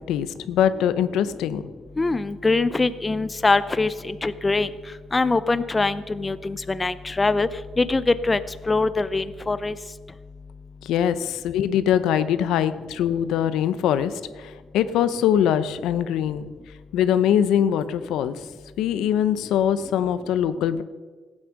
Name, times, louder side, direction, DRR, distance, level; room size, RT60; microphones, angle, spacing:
voice 1, 0.1-1.6 10.8-16.5 16.9-18.4 18.8-20.8, left 9 dB, 85° left, 13 dB, 0.7 m, -22 dB
voice 2, 2.0-4.7 5.1-7.5 7.8-8.4 8.7-9.7, left 3 dB, 20° left, 14 dB, 0.5 m, -23 dB
15.5 x 8.8 x 6.4 m, 1.4 s
cardioid pair, 120°, 0 cm